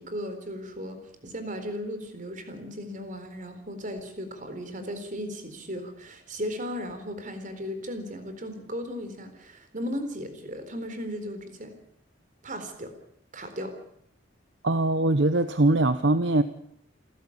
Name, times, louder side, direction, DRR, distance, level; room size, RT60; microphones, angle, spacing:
voice 1, 0.0-11.7 12.4-12.9 13.3-13.7, equal, 45° right, 8 dB, 4.0 m, -36 dB
voice 2, 14.6-16.4, right 2 dB, 70° right, 11 dB, 1.0 m, -22 dB
28.5 x 12.5 x 8.6 m, 0.70 s
head